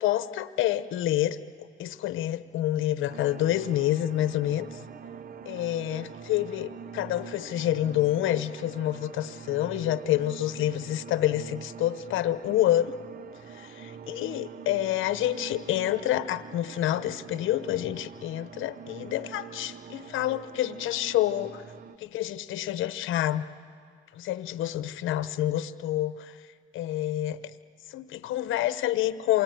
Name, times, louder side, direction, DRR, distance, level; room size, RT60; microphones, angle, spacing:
voice 1, 0.0-4.8 5.5-13.0 13.5-13.7 14.1-21.6 22.0-23.4 24.2-26.3 26.7-27.4 27.9-29.4, left 13 dB, 85° left, 13 dB, 0.9 m, -28 dB
sound 1, 3.1-22.0, right 7 dB, 45° right, 0.9 m, -44 dB
27.5 x 22.0 x 9.2 m, 2.1 s
cardioid pair, 90°, 20 cm